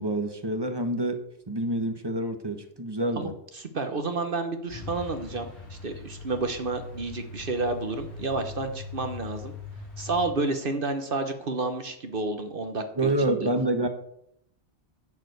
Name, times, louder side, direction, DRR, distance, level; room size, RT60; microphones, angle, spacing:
voice 1, 0.0-3.3 13.0-13.9, right 1 dB, 25° right, 7 dB, 1.1 m, -27 dB
voice 2, 3.2-9.5 10.0-13.5, right 3 dB, 55° right, 7 dB, 1.2 m, -30 dB
Truck, 4.7-10.3, left 3 dB, 90° left, 3.2 m, -41 dB
10.5 x 4.9 x 7.9 m, 0.74 s
omnidirectional pair, 1.1 m